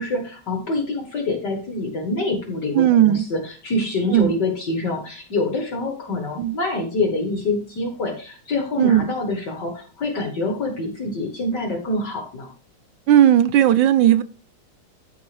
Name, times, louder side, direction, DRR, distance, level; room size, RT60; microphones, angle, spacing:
voice 1, 0.0-12.5, left 2 dB, 55° left, 3 dB, 2.1 m, -26 dB
voice 2, 2.7-3.2 4.1-4.3 6.4-6.6 8.8-9.1 13.1-14.2, right 11 dB, 70° right, 14 dB, 1.2 m, -16 dB
13.5 x 5.3 x 3.4 m, 0.37 s
omnidirectional pair, 2.4 m